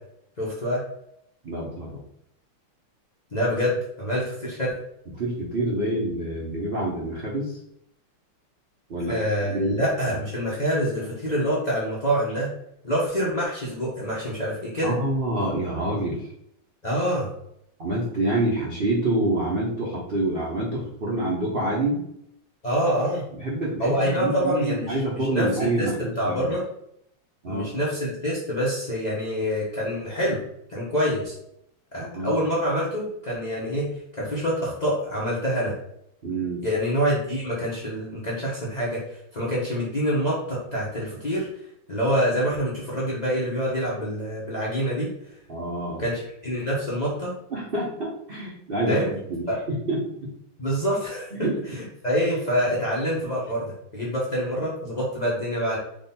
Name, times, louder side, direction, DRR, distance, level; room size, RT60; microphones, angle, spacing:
voice 1, 0.4-0.8 3.3-4.7 9.1-12.5 12.8-14.9 16.8-17.3 22.6-23.2 23.8-25.5 25.8-25.9 26.2-26.6 27.5-30.4 30.7-31.3 31.9-35.7 36.6-41.5 41.9-45.1 46.0-47.3 48.9-49.1 49.5-49.6 50.6-55.8, equal, 60° left, -7 dB, 0.4 m, -26 dB
voice 2, 1.4-2.0 5.2-7.6 8.9-9.8 10.1-10.2 14.8-16.3 17.8-22.0 23.3-26.6 27.4-27.7 32.0-32.4 36.2-36.7 45.5-46.0 47.5-50.0 51.3-51.5, right 1 dB, 65° right, -5 dB, 0.5 m, -27 dB
3.7 x 3.3 x 4.2 m, 0.74 s
omnidirectional pair, 2.4 m